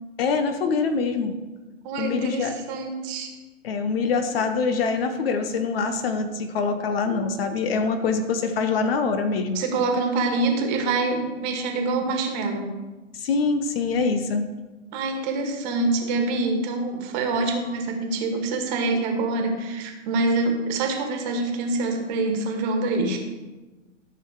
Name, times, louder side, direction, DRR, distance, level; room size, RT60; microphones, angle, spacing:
voice 1, 0.2-1.3 2.0-2.5 3.6-9.6 13.1-14.5, left 4 dB, 45° left, 8 dB, 1.1 m, -24 dB
voice 2, 1.8-3.3 7.0-7.2 9.5-12.7 14.9-23.2, right 3 dB, 35° right, 4 dB, 1.7 m, -25 dB
13.0 x 6.0 x 4.8 m, 1.2 s
hypercardioid pair, 125°, 39 cm